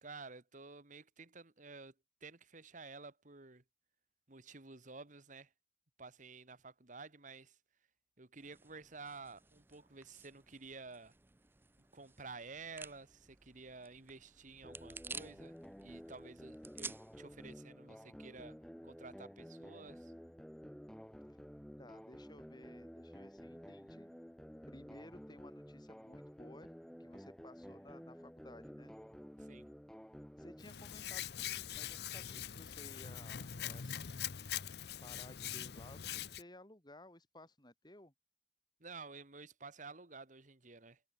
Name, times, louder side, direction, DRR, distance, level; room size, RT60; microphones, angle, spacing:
voice 1, 0.0-1.9 2.2-3.6 4.3-5.5 6.0-7.6 8.2-11.1 11.9-15.6 15.8-18.6 18.8-20.1 29.4-29.7 38.8-41.0, right 4 dB, 45° right, 1.8 m, -52 dB
sound 1, 8.4-17.6, right 4 dB, 10° right, 0.6 m, -53 dB
sound 2, 14.6-30.6, equal, 5° left, 1.6 m, -52 dB
voice 2, 21.8-24.1 24.7-26.7 27.0-28.9 30.4-34.3 35.0-38.1, left 1 dB, 25° left, 6.0 m, -57 dB
Hands, 30.6-36.4, left 9 dB, 65° left, 0.8 m, -43 dB
head